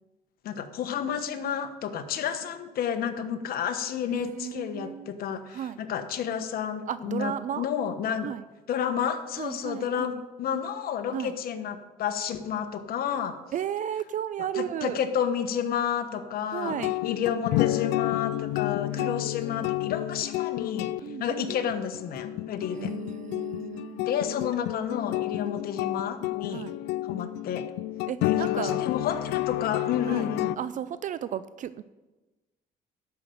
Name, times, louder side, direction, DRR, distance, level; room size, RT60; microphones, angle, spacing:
voice 1, 0.4-8.3 8.7-13.4 14.5-16.8 17.0-20.9 21.2-22.9 24.0-26.7 27.0-27.7 28.2-30.6, left 8 dB, 60° left, 8 dB, 1.2 m, -31 dB
voice 2, 4.1-5.1 5.5-5.8 6.9-7.7 8.2-8.5 9.4-10.2 11.1-11.4 13.5-15.0 16.5-17.0 18.9-19.2 21.0-21.7 22.7-24.0 26.5-26.7 28.1-28.8 30.1-31.8, right 10 dB, 50° right, 14 dB, 0.4 m, -34 dB
sound 1, 16.7-30.6, left 16 dB, 85° left, 0.4 m, -30 dB
12.0 x 5.8 x 7.7 m, 1.1 s
cardioid pair, 110°, 17 cm